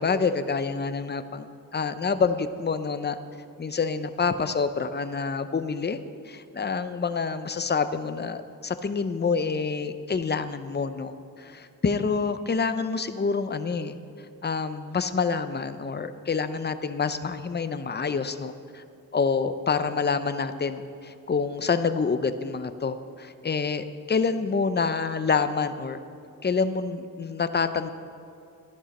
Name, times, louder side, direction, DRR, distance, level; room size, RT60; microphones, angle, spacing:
voice 1, 0.0-1.4 1.7-3.2 3.6-6.0 6.3-11.1 11.4-14.0 14.4-18.8 19.1-26.0 26.4-27.9, left 5 dB, 30° left, 11 dB, 0.6 m, -27 dB
13.0 x 11.0 x 4.2 m, 2.6 s
cardioid pair, 85°, 37 cm